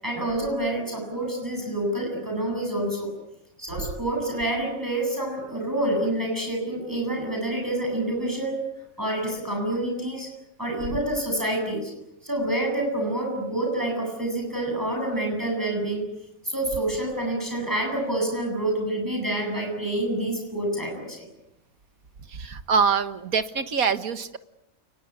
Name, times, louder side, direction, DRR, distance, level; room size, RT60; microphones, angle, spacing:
voice 1, 0.0-3.1 3.6-8.6 9.0-10.3 10.6-11.9 12.2-16.1 16.4-21.3, right 1 dB, 15° right, 1 dB, 7.9 m, -27 dB
voice 2, 22.3-24.4, right 6 dB, 90° right, 11 dB, 2.0 m, -24 dB
29.5 x 20.5 x 9.7 m, 0.83 s
omnidirectional pair, 1.5 m